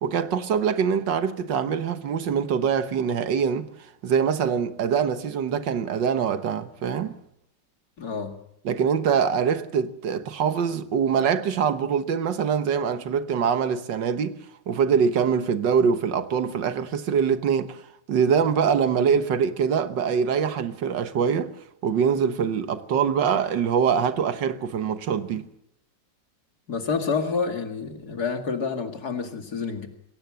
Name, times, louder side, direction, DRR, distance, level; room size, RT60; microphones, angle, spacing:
voice 1, 0.0-3.7 4.0-7.2 8.7-14.4 14.7-17.8 18.1-21.5 21.8-25.5, right 7 dB, 75° right, 1.8 m, -24 dB
voice 2, 8.0-8.3 26.7-29.9, left 5 dB, 55° left, 2.7 m, -28 dB
22.0 x 17.5 x 7.5 m
omnidirectional pair, 2.0 m